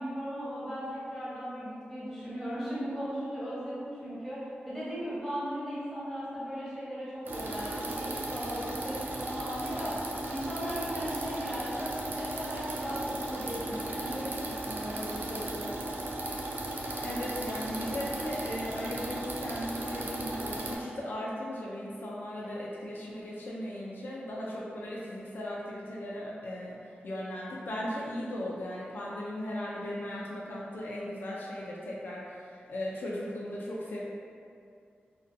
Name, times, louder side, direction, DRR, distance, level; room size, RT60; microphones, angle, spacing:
voice 1, 0.0-10.0 10.3-15.7 22.3-22.7, equal, 5° left, -11 dB, 0.9 m, -37 dB
sound 1, 7.3-20.8, right 1 dB, 65° right, 0.3 m, -36 dB
voice 2, 16.7-34.0, left 1 dB, 65° left, -5 dB, 0.3 m, -37 dB
2.5 x 2.2 x 2.5 m, 2.3 s
wide cardioid pair, 135°, 4 cm